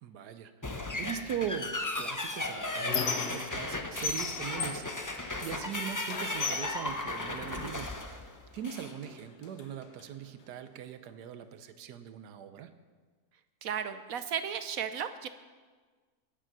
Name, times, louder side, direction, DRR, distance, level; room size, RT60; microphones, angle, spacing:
voice 1, 0.0-4.9 5.4-7.9 8.5-12.7, right 9 dB, 85° right, 10 dB, 1.4 m, -40 dB
sound 1, 0.6-9.0, left 2 dB, 20° left, 0.5 m, -36 dB
Squeak, 2.0-3.7 4.0-5.7 6.1-7.8 8.6-8.7 9.0-10.0, left 5 dB, 75° left, 1.6 m, -37 dB
voice 2, 13.6-15.3, right 8 dB, 65° right, 11 dB, 1.0 m, -34 dB
20.5 x 7.0 x 6.0 m, 1.4 s
omnidirectional pair, 1.7 m